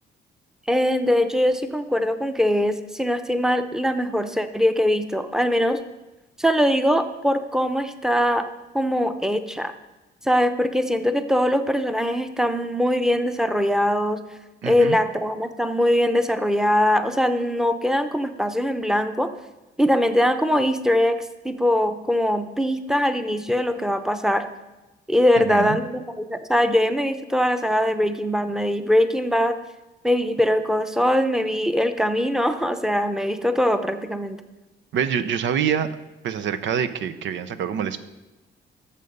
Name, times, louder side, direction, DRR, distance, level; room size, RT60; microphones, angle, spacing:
voice 1, 0.7-5.8 6.4-8.5 8.7-9.7 10.2-14.2 14.6-19.3 19.8-24.4 25.1-29.6 30.0-34.4, equal, 5° right, 9 dB, 0.8 m, -22 dB
voice 2, 14.6-15.0 25.4-25.8 34.9-36.0 36.2-38.0, right 8 dB, 70° right, 12 dB, 0.7 m, -25 dB
13.0 x 6.9 x 5.4 m, 1.1 s
cardioid pair, 90°, 20 cm